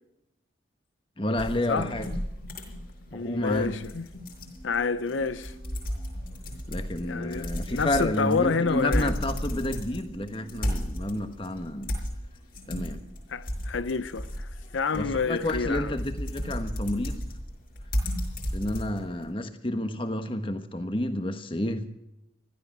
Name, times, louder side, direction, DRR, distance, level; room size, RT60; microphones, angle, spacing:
voice 1, 1.2-2.1 3.1-3.8 6.7-12.0 12.7-13.0 14.9-17.3 18.5-21.9, left 1 dB, 25° left, 1.3 m, -30 dB
sound 1, 1.4-19.3, equal, 50° left, 5.5 m, -34 dB
voice 2, 3.1-4.1 4.6-5.5 7.0-9.1 13.3-15.9, left 4 dB, 85° left, 0.7 m, -28 dB
sound 2, 4.2-13.5 13.8-13.9, right 2 dB, 80° right, 3.4 m, -54 dB
16.0 x 13.5 x 6.1 m
head